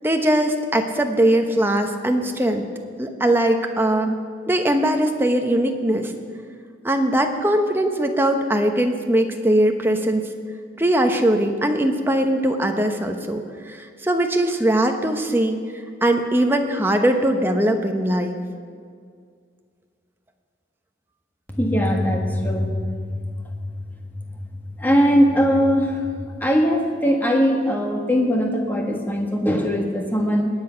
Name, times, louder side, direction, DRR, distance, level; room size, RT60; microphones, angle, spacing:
voice 1, 0.0-2.6 3.0-4.2 4.5-6.1 6.8-10.2 10.8-13.4 13.7-15.6 16.0-18.4, right 1 dB, 10° right, 4 dB, 1.0 m, -20 dB
voice 2, 21.5-23.6 24.8-26.1 26.4-30.5, equal, 10° left, 1 dB, 1.6 m, -20 dB
20.5 x 8.7 x 5.8 m, 2.1 s
head